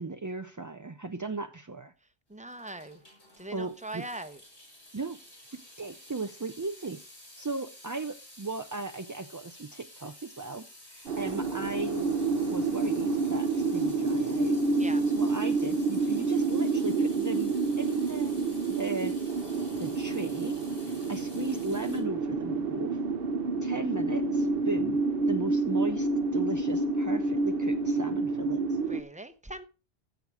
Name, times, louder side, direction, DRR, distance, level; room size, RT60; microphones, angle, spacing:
voice 1, 0.0-1.9 3.5-4.0 4.9-5.2 5.5-7.0 7.4-12.1 12.5-14.6 14.8-18.3 18.6-19.2 19.8-23.0 23.6-25.0 25.3-28.8, right 3 dB, 30° right, 0.4 m, -37 dB
voice 2, 2.3-3.0 3.4-4.4 14.8-15.0 28.9-29.6, right 2 dB, 5° right, 0.8 m, -41 dB
Water tap faucet / Sink (filling or washing) / Drip, 2.4-22.0, left 1 dB, 75° left, 5.8 m, -52 dB
sound 1, 11.1-29.0, right 3 dB, 60° right, 1.0 m, -28 dB
15.0 x 6.7 x 4.8 m
omnidirectional pair, 1.1 m